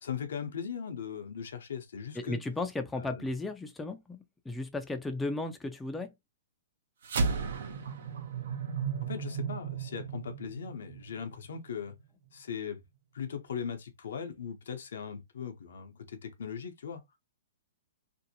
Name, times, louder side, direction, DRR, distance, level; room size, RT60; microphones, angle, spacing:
voice 1, 0.0-2.4 2.9-3.3 9.0-12.0 12.3-12.8 13.1-17.0, left 7 dB, 75° left, 0.6 m, -39 dB
voice 2, 2.1-6.1, left 2 dB, 10° left, 0.3 m, -35 dB
sound 1, 7.0-11.7, right 5 dB, 70° right, 0.6 m, -34 dB
2.6 x 2.1 x 2.7 m
hypercardioid pair, 130°, 0 cm